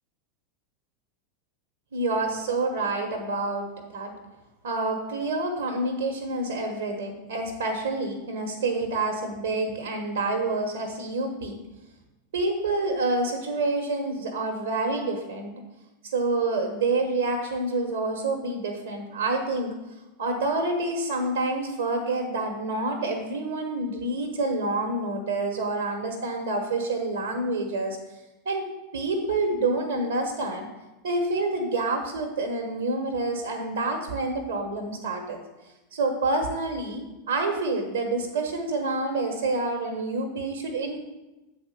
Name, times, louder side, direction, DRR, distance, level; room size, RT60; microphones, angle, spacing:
voice 1, 1.9-4.1 4.6-11.6 12.3-15.5 16.0-19.7 20.2-28.0 28.4-30.7 31.0-35.4 35.9-41.0, right 2 dB, 65° right, 2 dB, 1.2 m, -28 dB
7.8 x 4.3 x 6.6 m, 1.0 s
figure-of-eight pair, 85°, 0 cm